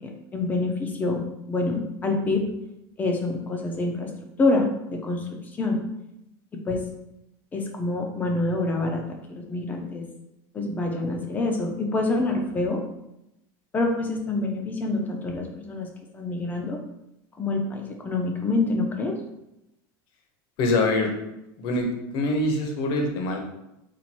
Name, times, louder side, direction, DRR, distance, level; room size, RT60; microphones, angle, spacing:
voice 1, 0.0-1.2 1.5-2.4 3.0-4.1 4.4-5.2 5.6-5.8 6.7-6.8 7.5-9.0 9.3-10.0 10.5-12.8 13.7-15.9 16.1-16.8 17.4-19.1, left 2 dB, 15° left, 2 dB, 0.5 m, -26 dB
voice 2, 20.6-21.1 21.6-23.4, left 2 dB, 40° left, 3 dB, 0.8 m, -24 dB
4.4 x 2.5 x 4.2 m, 0.87 s
supercardioid pair, 170°, 12 cm